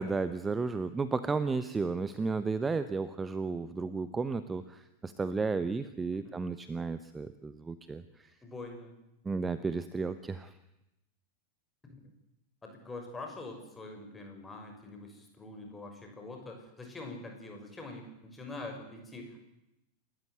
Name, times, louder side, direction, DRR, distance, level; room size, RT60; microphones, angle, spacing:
voice 1, 0.0-8.3 9.2-10.5, right 4 dB, 15° right, 13 dB, 1.1 m, -33 dB
voice 2, 8.4-9.0 11.8-12.0 12.6-19.4, left 2 dB, 15° left, 3 dB, 6.3 m, -44 dB
28.0 x 14.0 x 9.4 m, 0.90 s
figure-of-eight pair, 90°, 0 cm